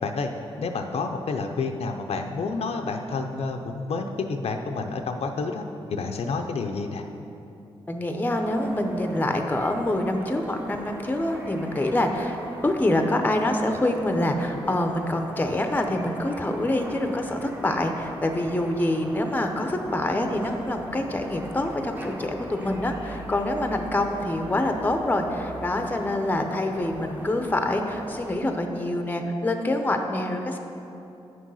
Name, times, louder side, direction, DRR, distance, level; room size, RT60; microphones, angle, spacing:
voice 1, 0.6-5.6 5.9-7.0, left 4 dB, 75° left, 4 dB, 0.6 m, -29 dB
voice 2, 7.9-12.4 12.6-30.6, left 1 dB, 15° left, 5 dB, 0.7 m, -26 dB
sound 1, 8.4-28.4, right 1 dB, 15° right, 1.0 m, -41 dB
9.1 x 6.3 x 5.6 m, 2.8 s
wide cardioid pair, 115°, 11 cm